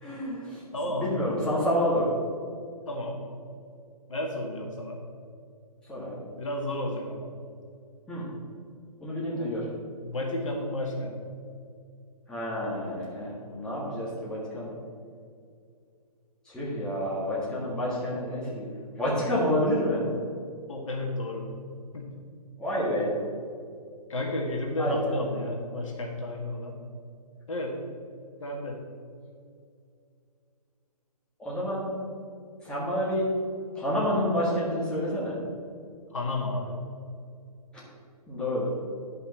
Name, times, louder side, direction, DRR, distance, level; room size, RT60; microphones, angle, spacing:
voice 1, 0.0-0.6 0.9-2.1 5.9-6.2 8.1-8.2 9.0-9.6 12.3-14.8 16.5-18.6 19.0-20.0 22.6-23.1 24.8-25.0 31.4-31.9 32.6-33.3 33.8-35.4 37.7-37.8 38.3-38.7, equal, 5° left, -8 dB, 1.9 m, -28 dB
voice 2, 0.7-1.2 2.9-3.2 4.1-5.0 6.3-7.3 10.0-11.4 20.7-21.5 21.9-22.1 24.1-26.8 27.5-27.8 28.4-28.8 36.1-36.8, left 1 dB, 55° left, 0 dB, 1.7 m, -32 dB
10.5 x 5.7 x 4.2 m, 2.3 s
figure-of-eight pair, 135°, 20 cm